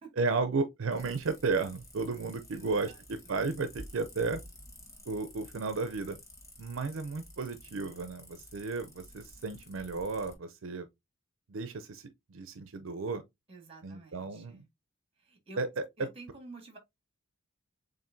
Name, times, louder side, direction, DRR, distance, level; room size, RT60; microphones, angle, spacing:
voice 1, 0.2-4.4 5.1-6.2 6.6-10.9 11.5-13.2 13.8-14.6 15.6-15.8, right 4 dB, 75° right, 0.5 m, -33 dB
sound 1, 0.9-10.3, left 1 dB, 15° left, 1.3 m, -52 dB
voice 2, 2.5-3.3 13.5-14.7 15.2-15.6 16.0-16.8, right 3 dB, 30° right, 1.7 m, -50 dB
7.2 x 2.6 x 2.6 m
head